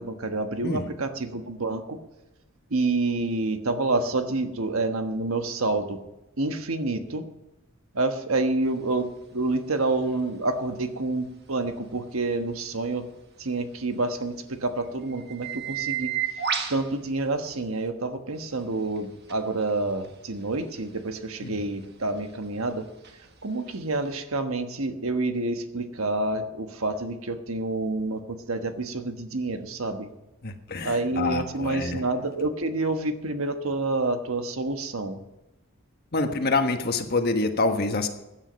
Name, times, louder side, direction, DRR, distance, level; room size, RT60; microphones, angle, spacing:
voice 1, 0.0-2.0 2.7-6.0 6.4-7.2 7.9-13.0 13.4-16.1 16.7-22.9 23.4-30.1 30.8-35.2, right 2 dB, 90° right, 7 dB, 1.3 m, -28 dB
sound 1, 8.6-17.9 18.3-24.2, right 8 dB, 55° right, 1.5 m, -37 dB
voice 2, 30.4-32.0 36.1-38.1, left 3 dB, 50° left, 6 dB, 1.4 m, -26 dB
15.5 x 9.9 x 5.2 m, 0.98 s
head